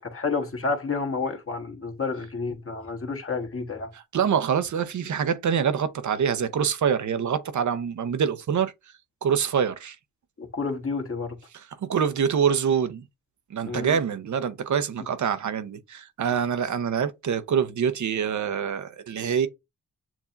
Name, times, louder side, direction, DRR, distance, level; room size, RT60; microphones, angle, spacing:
voice 1, 0.0-3.9 10.4-11.4 13.6-14.0 16.3-16.4, left 4 dB, 40° left, 1.5 m, -30 dB
voice 2, 4.1-8.7 9.2-10.0 11.5-11.6 11.9-13.0 13.5-19.5, right 7 dB, 60° right, 0.8 m, -25 dB
7.2 x 2.8 x 2.4 m
cardioid pair, 60°, 33 cm